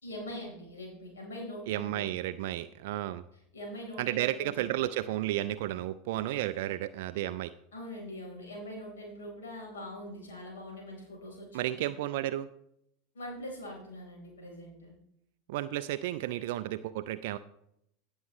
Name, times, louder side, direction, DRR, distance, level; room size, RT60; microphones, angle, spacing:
voice 1, 0.0-2.0 3.5-4.5 7.7-11.8 13.1-14.9, left 1 dB, 75° left, -1 dB, 4.0 m, -43 dB
voice 2, 1.7-3.2 4.0-7.5 11.5-12.5 15.5-17.4, right 14 dB, 60° right, 13 dB, 0.3 m, -32 dB
16.5 x 7.2 x 3.1 m, 0.76 s
figure-of-eight pair, 80°, 0 cm